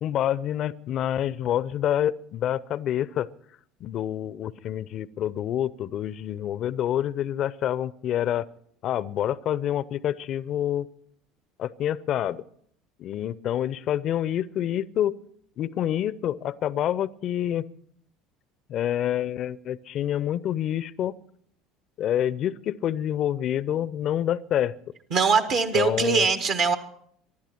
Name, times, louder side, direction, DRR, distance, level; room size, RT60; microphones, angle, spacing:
voice 1, 0.0-3.3 3.8-8.5 8.8-10.9 11.6-12.4 13.0-15.2 15.6-17.7 18.7-21.1 22.0-24.7 25.7-26.3, left 11 dB, 50° left, 19 dB, 0.6 m, -27 dB
voice 2, 25.1-26.8, right 5 dB, 60° right, 8 dB, 1.5 m, -22 dB
25.0 x 12.0 x 4.5 m, 0.65 s
figure-of-eight pair, 65°, 0 cm